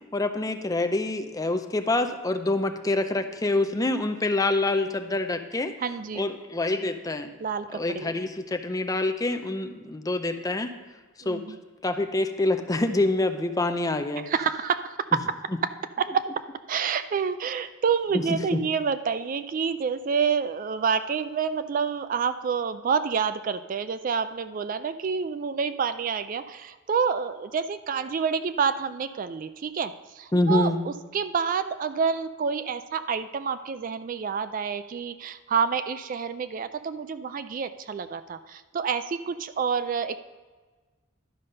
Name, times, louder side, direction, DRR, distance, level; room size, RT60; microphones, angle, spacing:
voice 1, 0.1-5.7 6.1-7.3 7.7-10.7 11.3-11.4 11.8-14.2 18.1-18.6 30.3-30.8, left 2 dB, 15° left, 7 dB, 0.5 m, -26 dB
voice 2, 5.8-6.4 7.4-8.1 9.6-9.8 11.2-11.6 14.2-15.2 15.6-15.7 16.0-40.2, right 6 dB, 40° right, 12 dB, 0.3 m, -28 dB
11.5 x 5.5 x 5.3 m, 1.3 s
head